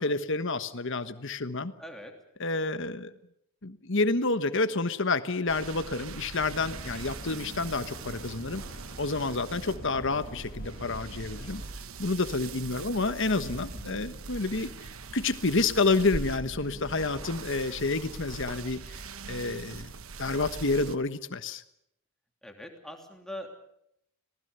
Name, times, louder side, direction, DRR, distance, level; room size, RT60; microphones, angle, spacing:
voice 1, 0.0-1.7 2.4-3.1 3.6-8.6 9.0-11.6 12.0-14.7 15.1-19.9 20.2-21.6, left 3 dB, 55° left, 12 dB, 1.3 m, -29 dB
voice 2, 1.8-2.1 12.4-12.9 22.4-23.5, equal, ahead, 3 dB, 3.0 m, -43 dB
sound 1, 5.5-21.0, right 4 dB, 65° right, 1.1 m, -42 dB
sound 2, 6.5-11.7, left 1 dB, 40° left, 2.3 m, -46 dB
Car / Engine starting / Idling, 13.2-16.5, equal, 40° right, 6.2 m, -50 dB
26.5 x 19.5 x 6.9 m, 0.76 s
head